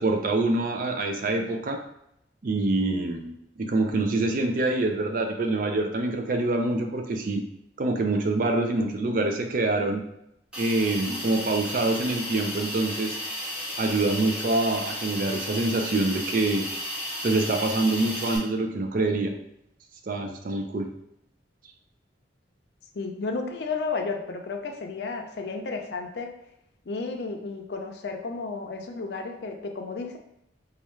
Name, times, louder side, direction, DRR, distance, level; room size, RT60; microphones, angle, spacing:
voice 1, 0.0-1.8 2.4-7.4 7.8-10.0 10.6-13.2 13.8-16.7 17.2-19.3 20.1-20.9, right 2 dB, 50° right, 4 dB, 0.4 m, -25 dB
Hiss, 10.5-18.4, equal, 5° right, 0.9 m, -34 dB
voice 2, 22.9-26.3 26.9-30.2, left 4 dB, 65° left, 4 dB, 0.5 m, -32 dB
4.2 x 2.4 x 3.1 m, 0.80 s
head